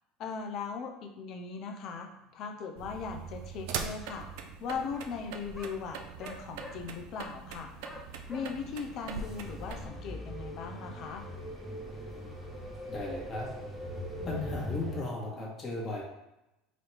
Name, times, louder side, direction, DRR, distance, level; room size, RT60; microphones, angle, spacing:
voice 1, 0.2-4.3 4.6-7.7 8.3-11.2, left 5 dB, 55° left, 4 dB, 0.5 m, -39 dB
sound 1, 2.1-2.2 3.0-3.1 3.4-3.5 3.7-3.8 4.9-5.1 5.5-5.8 6.2-6.8 7.8-8.5, left 1 dB, 10° left, 0.8 m, -46 dB
sound 2, 2.8-9.9, right 6 dB, 70° right, 0.4 m, -42 dB
sound 3, 7.7-15.0, equal, 20° right, 1.1 m, -41 dB
voice 2, 12.9-13.5 14.2-16.0, left 2 dB, 35° left, -4 dB, 1.3 m, -36 dB
4.0 x 2.8 x 3.3 m, 0.91 s
hypercardioid pair, 80°, 0 cm